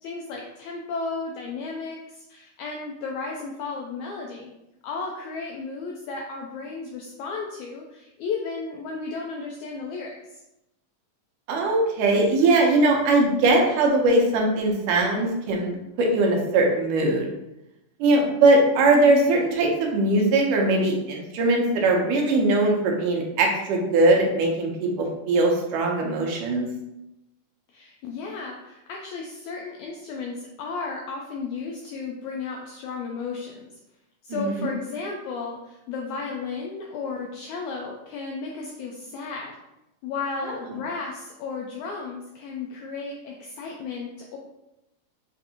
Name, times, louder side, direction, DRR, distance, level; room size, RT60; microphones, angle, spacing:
voice 1, 0.0-4.5 4.8-10.1 27.7-33.6 34.2-39.5 40.0-44.4, left 4 dB, 85° left, -1 dB, 1.7 m, -34 dB
voice 2, 11.5-17.3 18.0-26.7 34.3-34.7, right 2 dB, 75° right, 0 dB, 2.2 m, -21 dB
6.8 x 2.6 x 2.8 m, 0.90 s
omnidirectional pair, 3.9 m